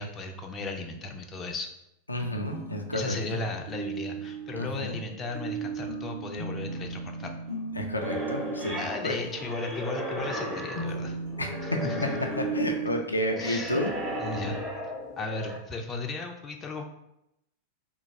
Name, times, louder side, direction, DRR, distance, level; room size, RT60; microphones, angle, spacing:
voice 1, 0.0-1.7 2.9-7.4 8.8-11.2 11.6-12.1 13.4-13.8 14.2-14.6 15.2-16.8, left 3 dB, 25° left, 4 dB, 0.4 m, -35 dB
voice 2, 2.1-3.4 4.5-5.0 7.8-9.2 11.4-11.8 12.5-13.9, left 1 dB, 85° left, 2 dB, 0.4 m, -31 dB
sound 1, 2.2-13.0, right 4 dB, 50° right, 1.4 m, -37 dB
sound 2, 8.0-15.6, equal, 15° right, 0.8 m, -36 dB
3.0 x 2.2 x 4.2 m, 0.84 s
figure-of-eight pair, 90°, 0 cm